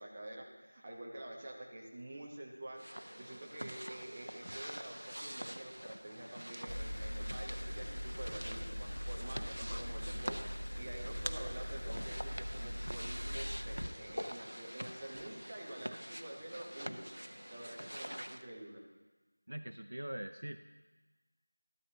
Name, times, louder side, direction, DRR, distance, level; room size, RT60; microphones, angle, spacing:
voice 1, 0.0-2.9 3.2-17.0 17.5-18.8, right 1 dB, 15° right, -3 dB, 1.0 m, -48 dB
sound 1, 2.8-18.4, equal, 90° right, 0.7 m, -46 dB
sound 2, 6.7-15.3, equal, 80° left, 0.7 m, -41 dB
voice 2, 19.5-20.6, right 1 dB, 60° right, 8 dB, 0.5 m, -42 dB
13.0 x 13.0 x 2.8 m, 1.2 s
figure-of-eight pair, 175°, 0 cm